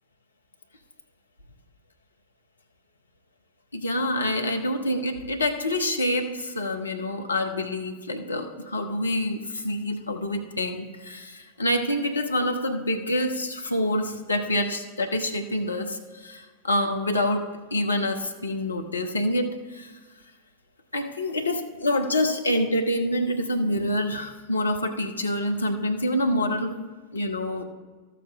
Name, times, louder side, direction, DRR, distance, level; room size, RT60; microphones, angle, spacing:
voice 1, 3.7-19.9 20.9-26.8 27.1-27.6, left 1 dB, 80° left, 5 dB, 0.7 m, -27 dB
13.0 x 7.2 x 3.5 m, 1.4 s
figure-of-eight pair, 90°, 0 cm